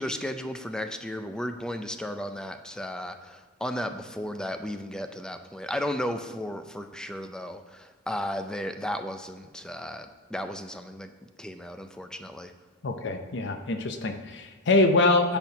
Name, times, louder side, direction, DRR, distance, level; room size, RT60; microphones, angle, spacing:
voice 1, 0.0-11.1 11.4-12.5, equal, 5° left, 7 dB, 0.4 m, -34 dB
voice 2, 12.8-15.4, left 2 dB, 65° left, 6 dB, 0.7 m, -24 dB
8.2 x 4.5 x 5.3 m, 1.4 s
head